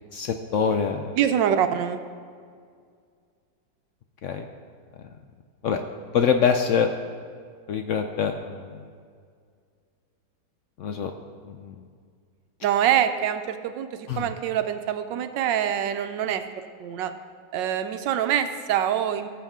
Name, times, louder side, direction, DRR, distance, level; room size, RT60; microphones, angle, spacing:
voice 1, 0.1-1.2 4.2-4.5 5.6-5.8 6.1-6.9 7.7-8.7 10.8-11.1 11.4-11.8 14.1-14.3, left 6 dB, 75° left, 6 dB, 0.7 m, -24 dB
voice 2, 1.1-2.0 12.6-16.4 16.8-17.1 17.5-19.3, right 9 dB, 85° right, 9 dB, 1.3 m, -25 dB
18.5 x 7.5 x 3.6 m, 2.1 s
omnidirectional pair, 1.9 m